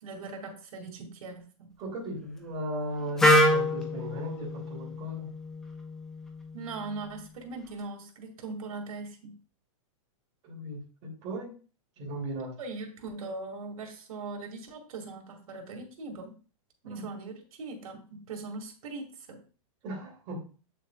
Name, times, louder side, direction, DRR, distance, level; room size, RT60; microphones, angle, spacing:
voice 1, 0.0-1.7 6.5-9.4 12.6-16.4 16.8-19.4, right 3 dB, 85° right, 3 dB, 2.4 m, -40 dB
voice 2, 1.8-5.3 10.4-11.5 12.0-12.6 16.8-17.1 19.8-20.5, right 1 dB, 25° right, -3 dB, 2.9 m, -37 dB
Wind instrument woodwind instrument, 3.2-7.1, left 1 dB, 5° left, 0.3 m, -27 dB
8.5 x 6.4 x 2.4 m, 0.37 s
supercardioid pair, 175°, 18 cm